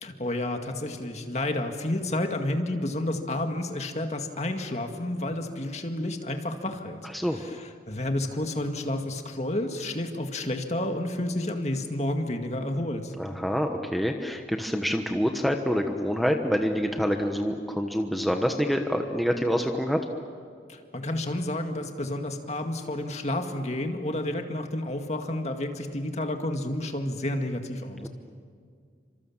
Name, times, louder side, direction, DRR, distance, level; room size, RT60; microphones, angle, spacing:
voice 1, 0.0-13.1 20.7-28.1, left 1 dB, 35° left, 4 dB, 2.0 m, -30 dB
voice 2, 13.2-20.1 28.0-28.1, equal, ahead, 3 dB, 1.1 m, -26 dB
30.0 x 26.0 x 7.3 m, 2.1 s
head